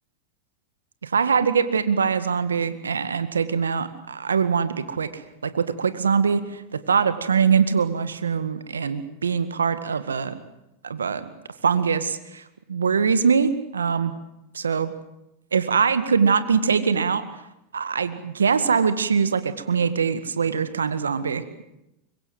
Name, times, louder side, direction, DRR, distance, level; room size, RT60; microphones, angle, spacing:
voice 1, 1.0-10.4 10.8-11.3 11.6-12.4 12.7-14.1 14.5-14.9 15.5-17.2 17.7-21.6, right 6 dB, 90° right, 12 dB, 1.8 m, -23 dB
25.0 x 23.0 x 7.8 m, 0.86 s
hypercardioid pair, 95°, 0 cm